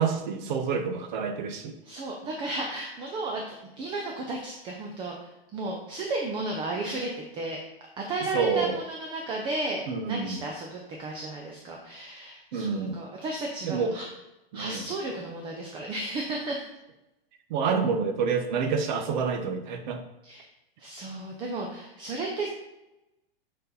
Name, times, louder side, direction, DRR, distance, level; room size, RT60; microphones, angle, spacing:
voice 1, 0.0-1.8 8.3-8.8 9.9-10.4 12.5-13.0 13.6-13.9 14.5-14.8 17.5-20.0, right 5 dB, 50° right, 7 dB, 0.9 m, -28 dB
voice 2, 1.9-5.1 5.5-7.6 8.0-14.1 14.5-16.7 20.2-20.5 20.8-22.5, right 2 dB, 15° right, 0 dB, 0.6 m, -33 dB
7.8 x 4.3 x 4.0 m, 0.94 s
hypercardioid pair, 150°, 31 cm